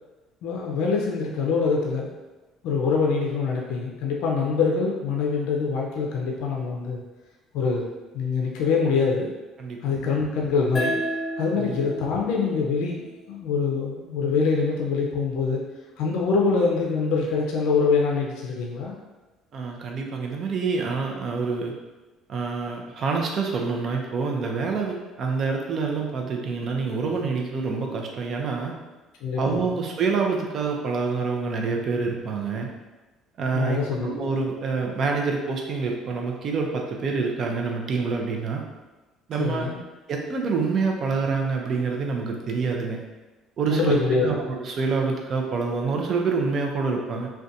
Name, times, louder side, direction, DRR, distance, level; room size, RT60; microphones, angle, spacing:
voice 1, 0.4-2.1 2.6-7.0 7.5-7.8 8.1-9.3 9.8-11.0 11.4-15.6 16.0-18.9 29.2-29.7 33.5-34.3 39.4-39.8 43.7-44.4, left 4 dB, 75° left, -1 dB, 0.4 m, -24 dB
voice 2, 9.6-9.9 11.6-11.7 19.5-21.7 22.3-28.7 29.4-32.7 33.4-38.6 39.3-39.7 40.1-43.0 43.6-47.3, right 4 dB, 50° right, 1 dB, 0.4 m, -27 dB
sound 1, 10.8-14.0, right 1 dB, 15° left, 0.8 m, -33 dB
2.5 x 2.2 x 2.6 m, 1.2 s
supercardioid pair, 80°, 0 cm